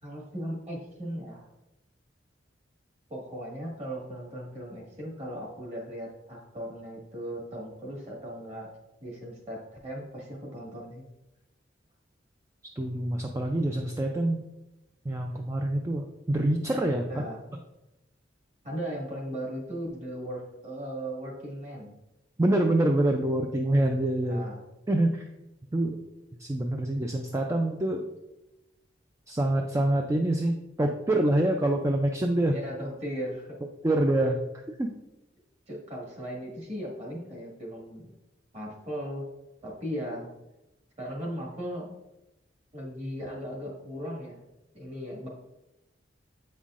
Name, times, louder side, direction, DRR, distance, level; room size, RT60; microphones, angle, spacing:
voice 1, 0.0-1.4 3.1-8.7 9.0-11.0 17.1-17.4 18.6-21.9 24.2-24.7 32.5-33.5 35.7-38.0 38.5-39.3 39.6-40.3 41.0-42.0 42.7-44.4 44.7-45.3, equal, 35° right, -2 dB, 1.7 m, -37 dB
voice 2, 12.8-14.4 15.1-17.2 22.4-24.4 24.9-25.3 25.7-26.0 26.4-28.0 29.3-32.5 33.8-34.4 34.8-34.9, right 1 dB, 15° right, 3 dB, 0.3 m, -26 dB
8.0 x 5.6 x 2.4 m, 0.95 s
head